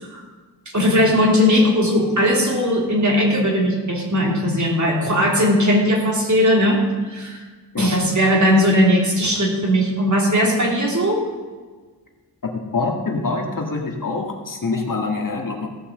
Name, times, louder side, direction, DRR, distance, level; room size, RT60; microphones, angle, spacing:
voice 1, 0.7-7.4 7.8-11.2, equal, 40° right, -1 dB, 3.1 m, -18 dB
voice 2, 12.7-15.7, left 3 dB, 45° left, 1 dB, 1.8 m, -25 dB
15.5 x 5.7 x 7.5 m, 1.4 s
wide cardioid pair, 75°, 43 cm